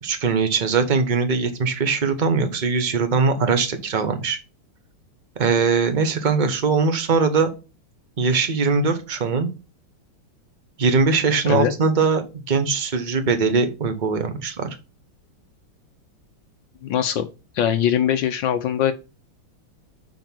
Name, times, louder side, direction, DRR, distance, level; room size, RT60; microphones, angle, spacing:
voice 1, 0.0-4.4 5.4-7.5 8.2-9.5 10.8-14.7, right 4 dB, 35° right, 7 dB, 0.8 m, -21 dB
voice 2, 16.8-17.3 17.5-18.9, left 9 dB, 70° left, 9 dB, 1.3 m, -21 dB
6.5 x 4.4 x 6.0 m, 0.29 s
omnidirectional pair, 2.3 m